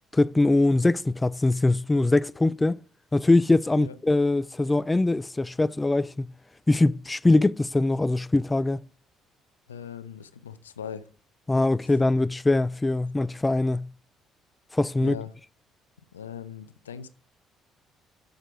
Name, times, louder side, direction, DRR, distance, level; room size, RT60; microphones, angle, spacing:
voice 1, 0.1-2.8 3.1-6.3 6.7-8.8 11.5-13.9 14.7-15.2, left 2 dB, 15° left, 0.3 m, -22 dB
voice 2, 9.7-11.1 15.0-15.3 16.1-17.1, left 8 dB, 85° left, 0.6 m, -39 dB
9.0 x 6.7 x 4.9 m
figure-of-eight pair, 50°, 0 cm